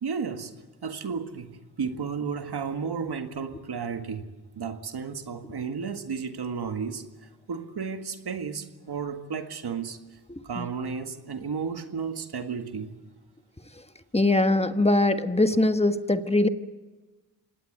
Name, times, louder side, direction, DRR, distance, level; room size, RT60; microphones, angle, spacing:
voice 1, 0.0-0.5 0.8-4.3 4.5-7.0 7.5-10.0 10.4-13.0, right 6 dB, 85° right, 1.8 m, -33 dB
voice 2, 10.3-10.6 14.1-16.5, left 2 dB, 15° left, 1.4 m, -22 dB
26.0 x 18.5 x 7.9 m
cardioid pair, 60°, 38 cm